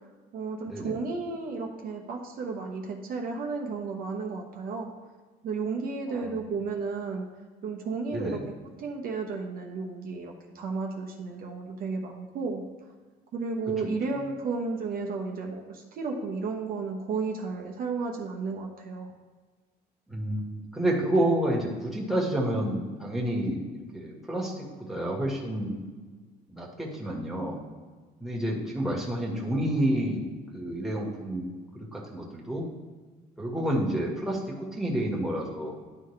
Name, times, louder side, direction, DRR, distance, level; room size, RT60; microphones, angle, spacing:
voice 1, 0.3-4.9 5.4-7.3 7.6-8.4 8.8-12.6 13.3-19.1, right 4 dB, 60° right, 1 dB, 1.0 m, -33 dB
voice 2, 8.1-8.4 13.8-13.9 20.1-23.6 23.9-25.8 26.5-27.6 28.2-30.2 30.5-32.7 33.4-35.7, right 1 dB, ahead, -4 dB, 1.6 m, -29 dB
11.0 x 4.0 x 3.2 m, 1.4 s
cardioid pair, 110°, 17 cm